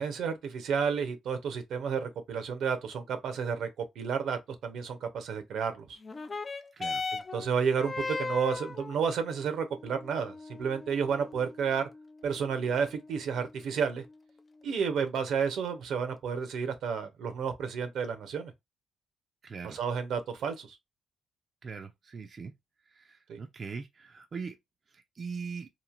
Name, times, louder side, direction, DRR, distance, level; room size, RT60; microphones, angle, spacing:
voice 1, 0.0-3.7 4.0-6.0 7.3-11.9 12.2-14.0 14.6-18.5 19.6-20.8 23.3-23.4, right 6 dB, 75° right, 0.7 m, -31 dB
sound 1, 6.0-15.0 15.8-15.9, left 3 dB, 30° left, 0.3 m, -40 dB
voice 2, 6.7-7.1 19.4-19.8 21.6-22.5 22.9-24.6 24.9-25.7, right 5 dB, 40° right, 0.4 m, -41 dB
3.0 x 2.5 x 2.4 m
cardioid pair, 90°, 0 cm